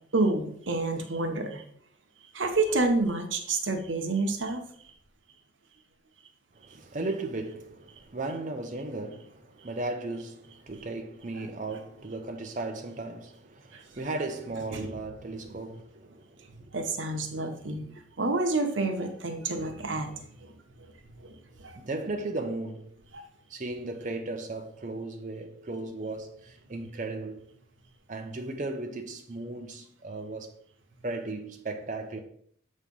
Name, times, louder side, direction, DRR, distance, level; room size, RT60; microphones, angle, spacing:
voice 1, 0.1-1.6 2.3-4.6 13.7-13.8 14.7-14.9 16.7-17.8 18.2-20.2 21.2-21.4 21.6-21.7 23.1-23.3, right 2 dB, 85° right, 1.0 m, -28 dB
voice 2, 6.5-16.5 21.7-22.9 23.5-27.5 28.1-30.6 31.0-32.2, right 2 dB, 40° right, 0.7 m, -36 dB
7.2 x 3.2 x 5.4 m
head